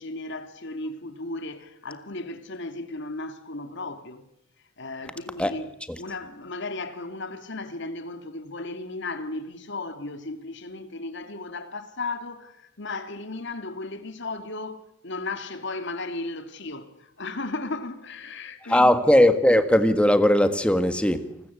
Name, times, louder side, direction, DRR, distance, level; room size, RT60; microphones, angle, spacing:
voice 1, 0.0-4.3 4.8-18.9, left 2 dB, 60° left, 2.6 m, -35 dB
voice 2, 18.7-21.4, left 1 dB, 5° left, 1.7 m, -19 dB
28.5 x 20.5 x 8.4 m
head